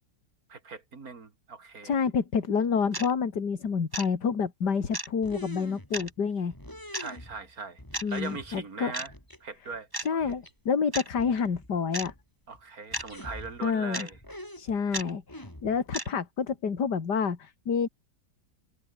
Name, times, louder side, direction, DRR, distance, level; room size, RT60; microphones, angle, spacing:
voice 1, 0.5-1.9 7.0-7.8 8.1-9.1 9.4-10.4 12.5-14.2, right 4 dB, 55° right, 3.3 m, -40 dB
voice 2, 1.8-6.5 8.0-8.9 10.0-12.1 13.6-14.1 14.6-17.9, left 6 dB, 65° left, 2.8 m, -28 dB
sound 1, 2.9-3.1 3.9-4.1 4.9-5.1 5.9-6.1 6.9-7.1 7.9-8.1 8.9-9.1 9.9-10.1 10.9-11.1 11.9-12.1 12.9-13.1 13.9-14.1 14.9-15.1 15.9-16.1, right 1 dB, 10° right, 2.2 m, -33 dB
sound 2, 5.2-6.2 6.5-7.5 7.8-8.6 9.1-9.4 9.7-9.8 10.2-10.5 10.8-10.9 11.1-12.2 12.5-12.6 12.9-13.8 14.1-15.9, left 1 dB, 10° left, 5.4 m, -45 dB
omnidirectional pair, 1.9 m